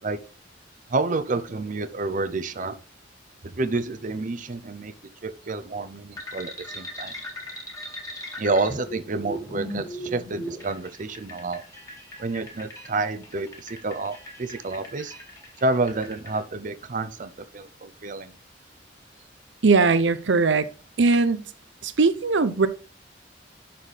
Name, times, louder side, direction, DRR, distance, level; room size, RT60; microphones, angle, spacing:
voice 1, 0.9-2.7 3.4-4.9 5.2-7.1 8.4-11.6 12.2-15.1 15.6-18.3, right 3 dB, 45° right, 0.6 m, -29 dB
sound 1, 6.2-16.4, equal, 20° left, 2.0 m, -39 dB
voice 2, 19.6-20.7 21.0-21.4 21.8-22.7, right 4 dB, 90° right, 0.7 m, -20 dB
11.5 x 4.3 x 3.3 m
head